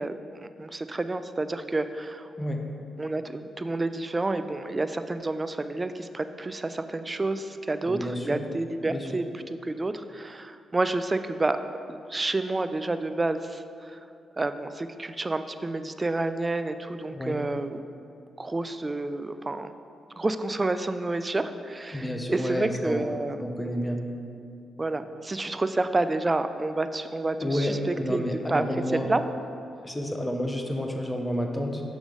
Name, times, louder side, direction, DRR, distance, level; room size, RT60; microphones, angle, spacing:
voice 1, 0.0-2.3 3.0-11.6 11.9-14.0 14.4-17.8 18.4-19.7 20.2-23.4 24.8-28.6 28.9-29.2, right 2 dB, 30° right, 10 dB, 0.3 m, -29 dB
voice 2, 7.8-8.4 8.9-9.2 17.1-17.4 21.9-24.0 27.4-29.1 29.8-31.8, equal, 15° left, 3 dB, 0.8 m, -30 dB
6.2 x 3.9 x 4.8 m, 2.4 s
supercardioid pair, 50°, 0 cm